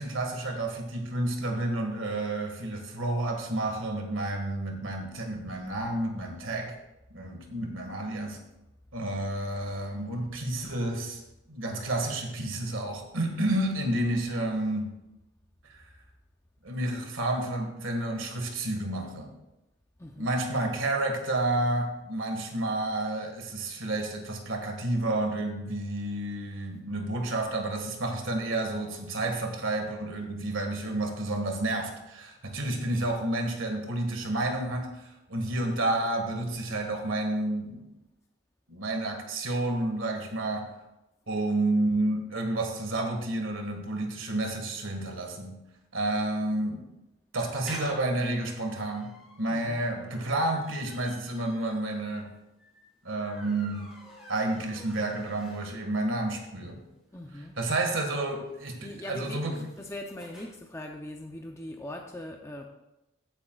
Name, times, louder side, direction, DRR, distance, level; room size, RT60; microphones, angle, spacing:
voice 1, 0.0-6.8 7.1-8.4 8.9-11.2 11.5-14.9 15.7-15.9 16.6-19.3 20.2-37.9 38.7-40.7 41.3-45.6 45.9-46.9 47.3-52.3 53.0-53.9 54.3-56.8 57.6-59.7, right 2 dB, 80° right, 4 dB, 1.8 m, -30 dB
voice 2, 20.0-20.3 49.5-49.8 57.1-57.6 58.8-62.7, left 1 dB, 15° left, 1 dB, 0.6 m, -41 dB
sound 1, 47.4-56.0 56.4-56.5 56.7-56.8 57.0-60.4, equal, 5° right, 3.8 m, -50 dB
15.5 x 9.9 x 2.4 m, 0.93 s
head